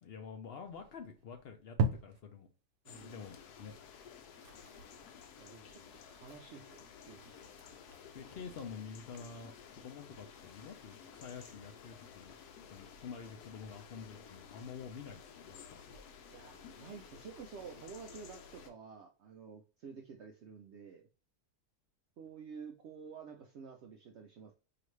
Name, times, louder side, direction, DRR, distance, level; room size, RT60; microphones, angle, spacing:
voice 1, 0.0-1.8 2.0-2.5 3.0-3.7 8.1-12.4 12.7-15.8, left 6 dB, 65° left, 0.6 m, -48 dB
sound 1, 0.6-2.5 3.0-3.1 3.4-3.5 3.8-4.0 4.2-12.9, right 3 dB, 90° right, 1.2 m, -43 dB
voice 2, 2.8-3.3 5.4-5.8 6.1-7.2 16.3-21.1 22.2-24.5, right 6 dB, 70° right, 0.6 m, -50 dB
sound 2, 2.9-18.7, left 7 dB, 85° left, 1.2 m, -54 dB
4.8 x 2.5 x 3.1 m
omnidirectional pair, 1.7 m